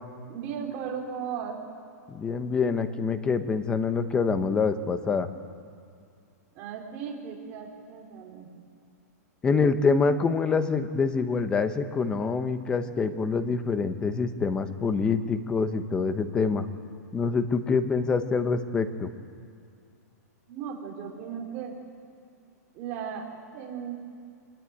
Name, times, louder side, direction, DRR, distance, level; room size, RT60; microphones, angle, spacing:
voice 1, 0.3-1.6 6.5-8.5 20.5-21.8 22.7-23.9, right 7 dB, 25° right, 0 dB, 3.6 m, -36 dB
voice 2, 2.1-5.3 9.4-16.7 17.1-19.1, left 4 dB, 10° left, 10 dB, 0.8 m, -26 dB
24.0 x 21.0 x 9.5 m, 2.3 s
supercardioid pair, 175°, 9 cm